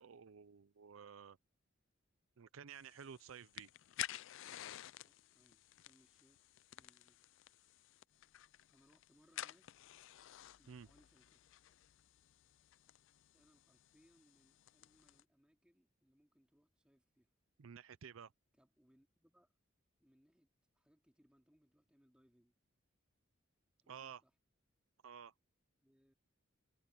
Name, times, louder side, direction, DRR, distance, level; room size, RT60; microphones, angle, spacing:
voice 1, 0.0-1.4 2.4-3.7 10.7-10.9 17.6-18.3 23.9-24.2 25.0-25.3, right 7 dB, 75° right, 0.5 m, -53 dB
sound 1, 2.7-15.2, left 13 dB, 65° left, 0.4 m, -52 dB
voice 2, 5.0-7.2 8.7-9.7 10.6-11.4 13.3-17.3 18.5-19.5 20.0-20.5 20.7-22.6 23.8-24.3 25.8-26.1, equal, 5° right, 2.7 m, -73 dB
head